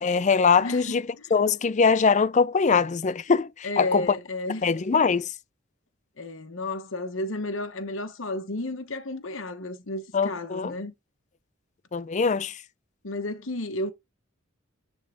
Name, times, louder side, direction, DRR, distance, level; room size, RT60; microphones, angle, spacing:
voice 1, 0.0-4.1 4.6-5.3 10.1-10.7 11.9-12.6, left 5 dB, 35° left, 0.4 m, -22 dB
voice 2, 0.6-1.0 3.6-5.0 6.2-10.9 13.0-13.9, left 2 dB, 65° left, 1.0 m, -32 dB
10.5 x 3.6 x 5.0 m
head